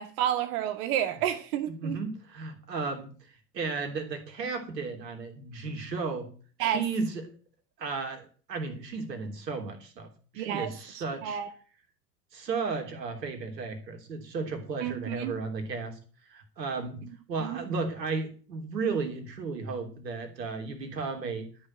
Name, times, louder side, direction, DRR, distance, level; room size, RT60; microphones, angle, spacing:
voice 1, 0.0-2.0 6.6-6.8 10.4-10.7 11.2-11.5 14.8-15.3 17.4-17.6, right 10 dB, 55° right, 2.2 m, -30 dB
voice 2, 1.7-6.3 6.6-7.2 7.8-11.4 12.3-16.0 16.2-17.0 17.3-21.5, right 4 dB, 75° right, 3.3 m, -34 dB
12.5 x 6.4 x 8.9 m
figure-of-eight pair, 80°, 50 cm